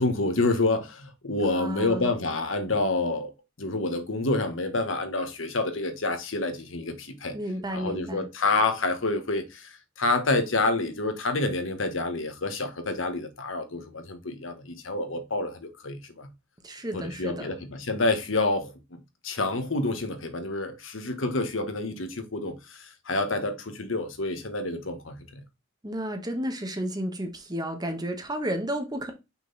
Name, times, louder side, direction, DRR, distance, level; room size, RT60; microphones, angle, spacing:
voice 1, 0.0-3.3 3.6-7.4 7.7-16.3 16.9-25.4, left 2 dB, 70° left, 1.3 m, -28 dB
voice 2, 1.5-2.1 7.3-8.3 16.6-17.5 25.8-29.1, equal, 20° right, 1.2 m, -32 dB
6.0 x 4.0 x 4.0 m
head